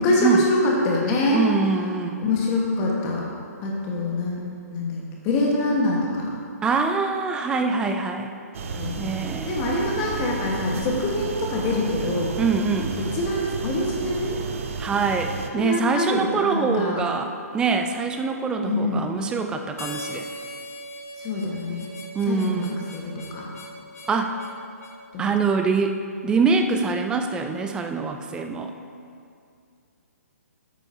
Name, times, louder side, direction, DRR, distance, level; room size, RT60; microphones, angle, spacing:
voice 1, 0.0-1.4 2.2-3.3 3.6-4.4 4.7-6.4 8.6-9.1 9.4-12.4 12.8-14.4 15.5-17.0 18.6-19.1 21.2-21.9 22.2-23.5 25.1-25.3, left 2 dB, 25° left, -2 dB, 1.4 m, -25 dB
voice 2, 1.3-2.2 6.6-8.3 9.0-9.5 12.4-12.9 14.8-20.3 22.1-22.7 24.1-24.4 25.2-28.7, right 4 dB, 10° right, 5 dB, 0.4 m, -24 dB
sound 1, 8.5-15.5, right 5 dB, 55° right, 0.7 m, -32 dB
Harmonica, 19.8-25.0, left 1 dB, 65° left, 1.1 m, -39 dB
10.5 x 8.4 x 2.7 m, 2.4 s
hypercardioid pair, 140°, 9 cm